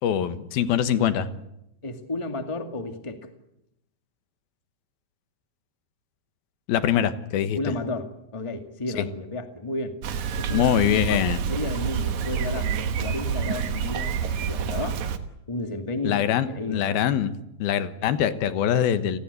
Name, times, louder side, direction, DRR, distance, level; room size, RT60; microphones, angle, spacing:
voice 1, 0.0-1.3 6.7-7.6 9.0-9.1 10.5-11.4 16.0-17.3 17.6-19.2, left 10 dB, 85° left, 11 dB, 3.2 m, -23 dB
voice 2, 1.8-3.3 7.5-10.0 10.4-11.2 11.5-15.0 15.5-17.1, left 2 dB, 15° left, 6 dB, 1.3 m, -32 dB
Bicycle, 10.0-15.2, right 7 dB, 60° right, 2.5 m, -28 dB
30.0 x 19.5 x 8.3 m, 0.83 s
omnidirectional pair, 4.2 m